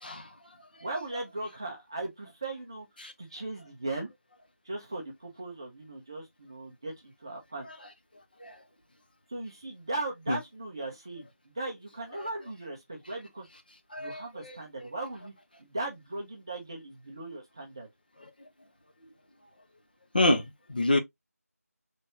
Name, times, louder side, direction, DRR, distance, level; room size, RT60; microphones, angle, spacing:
voice 1, 0.8-2.9 3.2-4.1 4.6-7.7 9.3-13.5 14.0-15.3 15.6-17.9, right 2 dB, 15° right, 0.7 m, -38 dB
voice 2, 13.9-14.5 20.1-21.0, left 1 dB, 35° left, 0.7 m, -27 dB
4.3 x 3.4 x 2.6 m
figure-of-eight pair, 175°, 8 cm